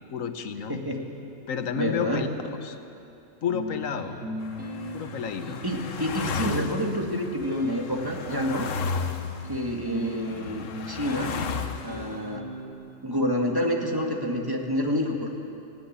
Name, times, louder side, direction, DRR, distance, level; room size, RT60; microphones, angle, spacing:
voice 1, 0.1-0.8 1.5-2.3 2.6-2.8 3.4-4.1 4.9-5.6, left 7 dB, 90° left, 8 dB, 1.4 m, -30 dB
voice 2, 0.7-1.1 1.8-2.3 5.6-8.7 9.5-11.4 11.8-12.5 13.0-15.4, equal, 15° right, 0 dB, 1.9 m, -28 dB
sound 1, 3.5-12.7, left 1 dB, 90° right, 3.4 m, -39 dB
sound 2, 4.4-12.3, left 5 dB, 75° left, 1.3 m, -35 dB
18.0 x 17.0 x 8.7 m, 2.7 s
omnidirectional pair, 1.3 m